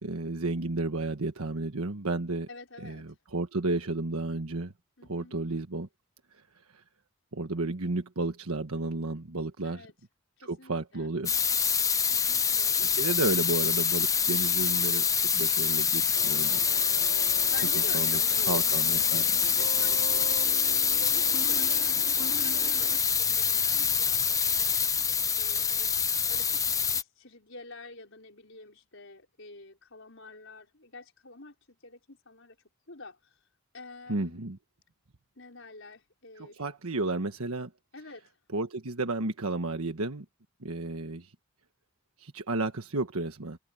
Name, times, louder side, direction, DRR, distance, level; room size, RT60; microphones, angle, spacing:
voice 1, 0.0-2.5 2.8-4.7 5.1-5.9 6.3-6.4 6.7-6.8 7.3-9.9 10.4-11.3 12.7-15.1 15.3-16.6 17.9-18.2 18.4-19.3 34.1-34.6 36.4-37.7 38.5-40.2 40.6-41.3 42.2-43.6, right 2 dB, 90° right, 1.4 m, -32 dB
voice 2, 2.5-3.1 5.0-5.4 9.6-9.9 10.4-11.1 12.1-13.7 14.1-14.3 17.3-18.6 19.1-20.2 20.8-24.8 25.4-26.0 26.2-26.7 26.9-32.6 32.9-33.4 33.7-34.4 35.4-36.6 37.9-38.3, left 2 dB, 60° left, 5.4 m, -48 dB
sound 1, 11.3-27.0, left 7 dB, 15° left, 0.6 m, -26 dB
sound 2, 16.2-23.0, right 2 dB, 65° right, 2.8 m, -42 dB
head